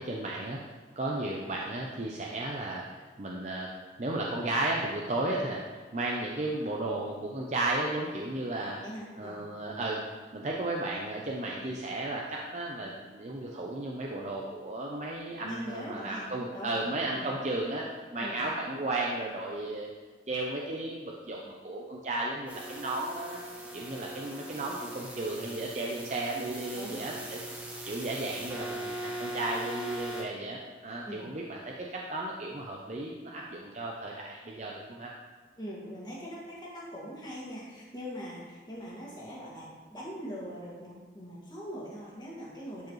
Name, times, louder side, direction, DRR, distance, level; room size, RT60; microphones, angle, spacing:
voice 1, 0.0-3.7 4.0-8.8 9.2-10.0 10.3-19.9 20.3-23.4 23.7-27.4 27.8-35.1, right 2 dB, 40° right, -2 dB, 0.6 m, -34 dB
voice 2, 8.8-9.4 15.4-16.3 16.5-17.4 18.2-18.4 23.6-23.8 26.7-27.0 31.0-31.2 35.6-42.9, equal, 25° left, -5 dB, 1.9 m, -42 dB
sound 1, 22.5-30.2, right 1 dB, 10° right, 0.9 m, -40 dB
12.0 x 4.9 x 3.1 m, 1.4 s
head